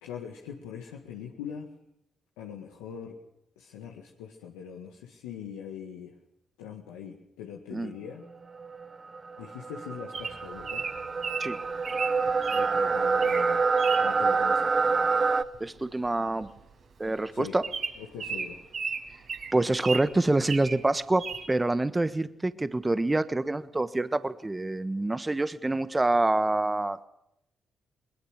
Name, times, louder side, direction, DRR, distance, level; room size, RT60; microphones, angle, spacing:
voice 1, 0.0-1.7 2.4-3.2 3.6-6.2 6.6-8.3 9.4-10.9 12.5-13.7 14.0-14.7 17.3-17.6 18.0-18.7, left 8 dB, 90° left, 0 dB, 1.8 m, -42 dB
sound 1, 8.5-15.4, right 4 dB, 40° right, 1.1 m, -26 dB
Bird vocalization bird call bird song, 10.1-12.7 13.1-13.5 13.8-14.1 15.5-15.8 16.0-16.1 16.4-16.6 17.0-17.1 17.6-20.1 20.4-20.8 21.2-21.4, right 5 dB, 65° right, 5.4 m, -35 dB
voice 2, 15.6-16.5 17.0-17.6 19.5-27.1, right 2 dB, 20° right, 13 dB, 1.3 m, -26 dB
21.5 x 21.0 x 6.6 m, 0.80 s
hypercardioid pair, 45°, 0 cm